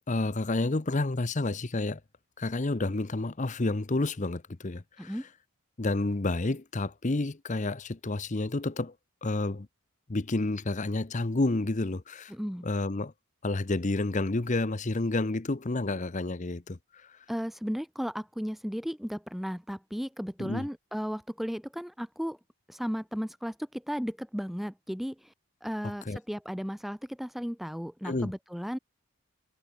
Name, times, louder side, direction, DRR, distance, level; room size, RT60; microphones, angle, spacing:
voice 1, 0.1-2.0 2.4-5.2 5.8-8.9 9.2-9.7 10.1-12.3 12.6-13.1 13.4-16.8 20.4-20.7 26.1-26.2 28.0-28.3, left 2 dB, 35° left, 0.7 m, -30 dB
voice 2, 12.3-12.7 17.3-22.4 22.7-25.3 25.6-28.8, equal, ahead, 0.6 m, -35 dB
head